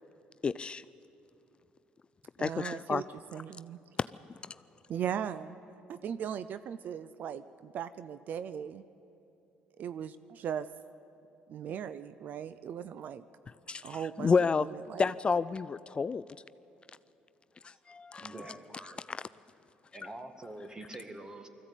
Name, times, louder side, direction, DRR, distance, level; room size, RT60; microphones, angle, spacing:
voice 1, 0.4-0.8 2.4-3.0 4.0-4.1 4.4-4.6 13.7-14.7 15.0-16.2 17.6-18.6 19.1-19.3 20.0-20.1, left 5 dB, 30° left, 16 dB, 0.4 m, -30 dB
voice 2, 2.4-3.0 3.3-3.8 4.9-5.6 5.9-8.8 9.8-10.7 11.5-13.2 13.8-14.3 14.6-15.1, right 8 dB, 60° right, 14 dB, 0.5 m, -38 dB
voice 3, 18.2-19.0 19.9-21.5, right 2 dB, 20° right, 7 dB, 1.9 m, -45 dB
20.5 x 15.0 x 9.0 m, 2.8 s
supercardioid pair, 80°, 3 cm